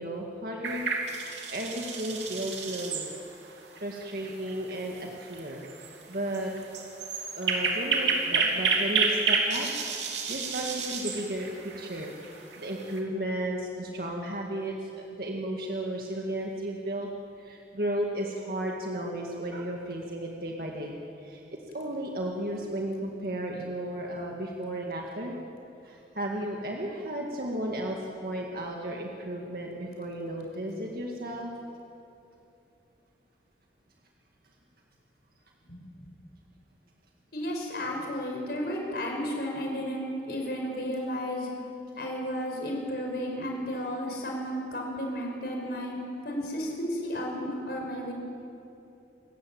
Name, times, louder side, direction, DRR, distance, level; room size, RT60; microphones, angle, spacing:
voice 1, 0.0-3.1 3.8-5.6 6.1-6.5 7.3-12.1 12.6-17.1 17.4-20.9 21.2-21.4 21.7-25.4 25.8-31.5, right 1 dB, 55° right, -1 dB, 2.1 m, -34 dB
sound 1, 0.6-13.0, right 4 dB, 90° right, 3.2 m, -31 dB
voice 2, 37.3-41.5 42.0-45.9 46.2-48.1, equal, 60° left, 0 dB, 5.4 m, -33 dB
27.5 x 15.0 x 8.8 m, 2.7 s
head